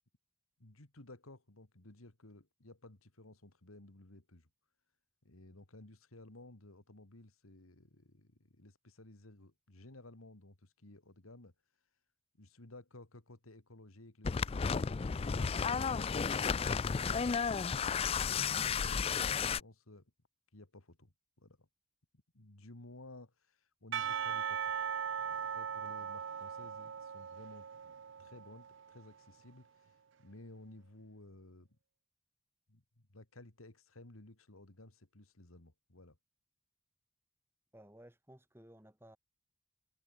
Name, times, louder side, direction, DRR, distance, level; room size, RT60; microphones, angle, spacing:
voice 1, 0.6-4.5 5.2-11.5 12.4-20.1 20.5-21.7 22.3-24.7 25.2-27.7 28.2-31.8 32.7-36.2, left 2 dB, 85° left, 2.5 m, -56 dB
sound 1, 14.2-19.6, left 6 dB, 25° left, 0.3 m, -33 dB
Percussion / Church bell, 23.9-29.0, right 7 dB, 60° right, 0.5 m, -39 dB
voice 2, 37.7-39.2, right 1 dB, 10° right, 3.4 m, -57 dB
head